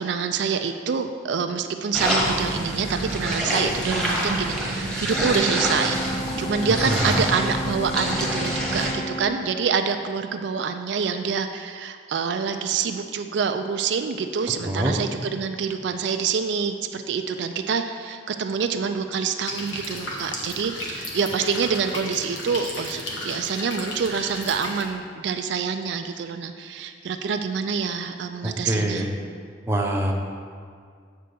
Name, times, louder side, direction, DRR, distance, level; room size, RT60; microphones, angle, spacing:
voice 1, 0.0-6.0 6.4-29.1, right 6 dB, 65° right, 7 dB, 0.4 m, -26 dB
sound 1, 1.9-8.9, right 1 dB, 5° left, 1.2 m, -26 dB
Brass instrument, 5.1-9.5, equal, 25° left, 0.3 m, -34 dB
voice 2, 6.9-7.2 14.6-14.9 28.4-29.1 29.7-30.1, right 1 dB, 10° right, 0 dB, 0.7 m, -24 dB
sound 2, 19.5-24.8, left 1 dB, 80° left, 1.4 m, -34 dB
7.7 x 4.5 x 6.7 m, 2.1 s
head